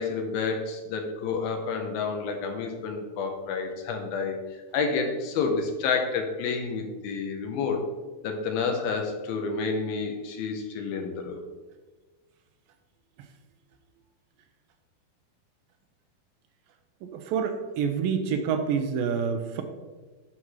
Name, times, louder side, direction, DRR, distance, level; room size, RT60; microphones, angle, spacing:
voice 1, 0.0-7.9 8.2-11.4, left 5 dB, 85° left, 4 dB, 2.7 m, -29 dB
voice 2, 17.0-19.6, right 6 dB, 80° right, 6 dB, 2.2 m, -27 dB
11.0 x 5.9 x 3.1 m, 1.3 s
omnidirectional pair, 4.3 m